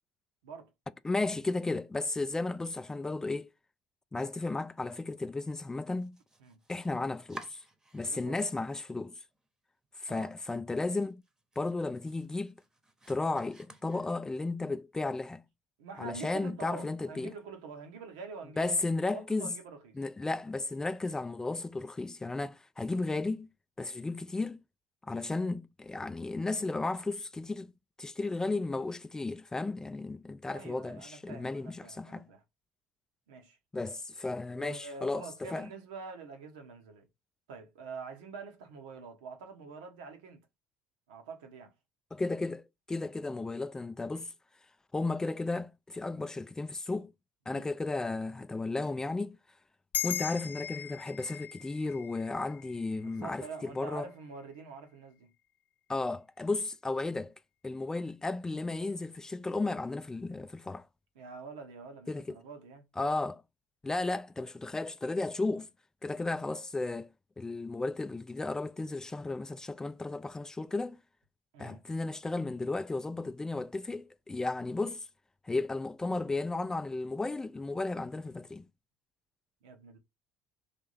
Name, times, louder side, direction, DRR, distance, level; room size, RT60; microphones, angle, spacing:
voice 1, 1.0-3.5 4.1-6.2 6.7-7.6 7.9-9.1 10.0-11.2 11.6-12.5 13.1-15.4 16.0-17.3 18.6-19.5 20.0-23.5 23.8-24.6 25.0-27.7 28.0-32.3 33.7-35.7 42.1-44.3 44.9-47.1 47.5-49.4 50.0-54.1 55.9-57.3 57.6-60.9 62.1-62.4 63.0-63.4 63.8-65.7 66.0-67.1 67.4-71.0 71.6-75.1 75.4-78.6, left 3 dB, 15° left, 0.4 m, -34 dB
Domestic sounds home sounds, 5.8-8.4 8.7-9.5 9.8-9.9 10.4-10.5 10.8-14.5, right 2 dB, 15° right, 0.9 m, -53 dB
voice 2, 8.0-8.4 10.1-10.3 15.8-18.7 19.0-20.0 30.5-32.4 33.3-33.6 34.5-37.1 37.5-40.5 41.1-41.7 47.5-47.7 53.0-55.3 61.1-62.8 71.5-71.8 79.6-80.0, right 5 dB, 80° right, 1.0 m, -46 dB
sound 1, 49.9-54.6, left 11 dB, 45° left, 0.7 m, -40 dB
3.4 x 2.7 x 4.0 m
hypercardioid pair, 70°, 4 cm